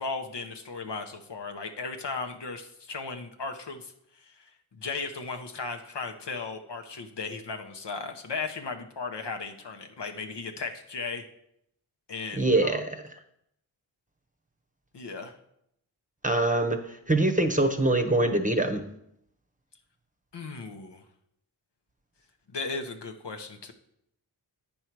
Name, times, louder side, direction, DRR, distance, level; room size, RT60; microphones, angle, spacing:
voice 1, 0.0-3.9 4.2-4.4 4.8-11.2 12.1-12.8 14.9-15.3 20.3-21.0 22.5-23.7, left 4 dB, 60° left, 4 dB, 1.0 m, -36 dB
voice 2, 12.4-13.0 16.2-18.8, right 2 dB, 15° right, 6 dB, 1.0 m, -24 dB
8.9 x 5.4 x 4.6 m, 0.76 s
cardioid pair, 45°, 48 cm